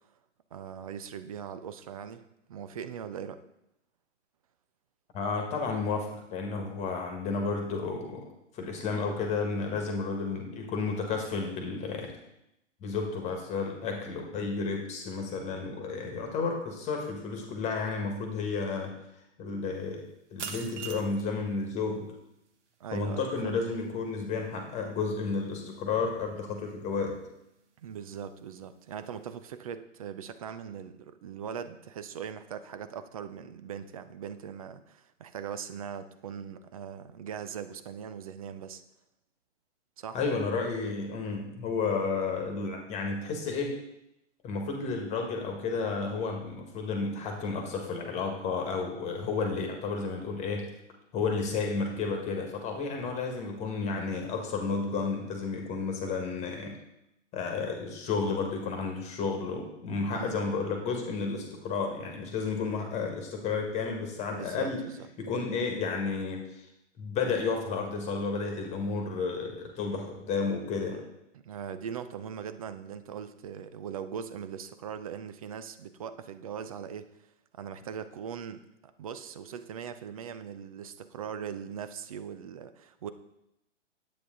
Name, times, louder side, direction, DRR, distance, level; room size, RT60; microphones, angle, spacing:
voice 1, 0.5-2.2 2.5-3.4 22.8-23.5 27.8-38.8 40.0-40.2 60.1-60.5 64.3-65.1 71.4-77.1 77.6-78.7 79.0-83.1, right 8 dB, 30° right, 12 dB, 0.5 m, -40 dB
voice 2, 5.1-8.2 8.5-12.1 12.8-18.9 19.4-22.1 22.9-27.2 40.1-43.7 44.4-50.7 51.1-56.8 57.3-64.8 65.2-66.6 67.0-71.0, left 4 dB, 20° left, 2 dB, 1.6 m, -32 dB
sound 1, 19.8-29.4, right 6 dB, 65° right, 1.4 m, -48 dB
10.0 x 8.5 x 3.8 m, 0.84 s
hypercardioid pair, 140°, 37 cm